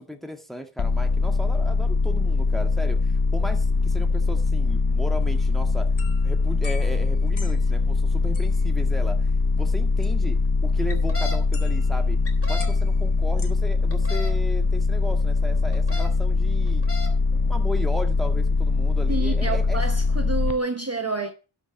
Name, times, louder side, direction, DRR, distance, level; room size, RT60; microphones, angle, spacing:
voice 1, 0.0-5.9 6.2-12.2 12.5-16.8 17.3-19.8, equal, ahead, 1.8 m, -36 dB
sound 1, 0.8-20.5, left 3 dB, 45° left, 0.8 m, -22 dB
sound 2, 5.2-7.8 8.3-8.7 10.0-10.1 11.5-12.1 12.6-13.5, left 5 dB, 75° left, 1.5 m, -44 dB
sound 3, 10.9-11.4 12.2-12.7 13.9-14.3 15.7-16.1 16.7-17.1, left 3 dB, 30° left, 2.7 m, -34 dB
voice 2, 19.1-21.3, right 3 dB, 30° right, 1.0 m, -28 dB
11.5 x 6.0 x 5.8 m
wide cardioid pair, 45°, 48 cm